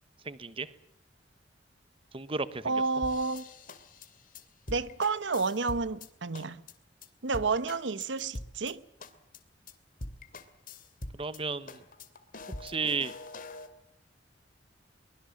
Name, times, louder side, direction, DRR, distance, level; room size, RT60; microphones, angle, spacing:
voice 1, 0.2-0.7 2.1-2.7 11.1-11.8 12.6-13.1, right 4 dB, 30° right, 1.1 m, -33 dB
voice 2, 2.6-3.4 4.7-6.6 7.2-8.8, right 4 dB, 90° right, 1.0 m, -30 dB
sound 1, 3.0-6.1 6.3-6.7 7.0-7.1 7.3-8.7 9.0-9.4 9.7-9.8 10.0-11.4 11.7-13.7, left 2 dB, 50° left, 2.5 m, -43 dB
23.5 x 21.5 x 7.3 m
head